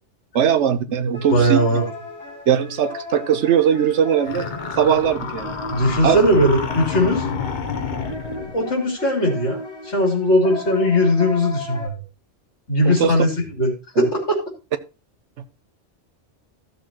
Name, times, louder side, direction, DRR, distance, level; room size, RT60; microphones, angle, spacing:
voice 1, 0.3-1.6 2.5-4.5 4.8-5.6 6.0-6.2 12.8-13.1 14.0-14.1, right 8 dB, 75° right, 1.1 m, -19 dB
voice 2, 1.0-1.8 5.7-7.3 8.5-11.9 12.7-13.3 13.6-14.4, equal, 65° left, 3.4 m, -19 dB
sound 1, 1.1-11.9, left 2 dB, 5° left, 6.1 m, -36 dB
sound 2, 4.3-8.6, left 6 dB, 45° left, 1.0 m, -29 dB
14.5 x 6.9 x 2.9 m
omnidirectional pair, 1.2 m